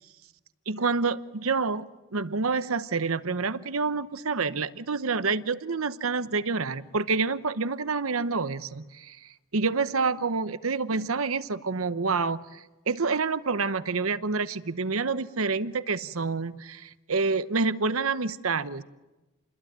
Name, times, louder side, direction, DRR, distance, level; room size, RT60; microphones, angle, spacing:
voice 1, 0.7-1.9 2.1-18.8, right 4 dB, 85° right, 13 dB, 1.0 m, -28 dB
28.5 x 22.0 x 9.4 m, 1.1 s
head